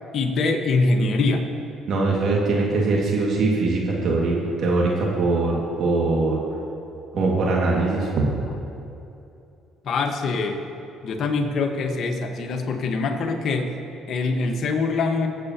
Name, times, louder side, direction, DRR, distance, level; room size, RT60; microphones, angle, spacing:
voice 1, 0.1-1.4 9.8-10.6 11.0-13.7 14.1-15.3, left 3 dB, 60° left, 4 dB, 1.4 m, -23 dB
voice 2, 1.9-6.4 7.1-8.4, right 3 dB, 60° right, -3 dB, 2.1 m, -22 dB
24.5 x 8.2 x 3.0 m, 2.7 s
hypercardioid pair, 60°, 0 cm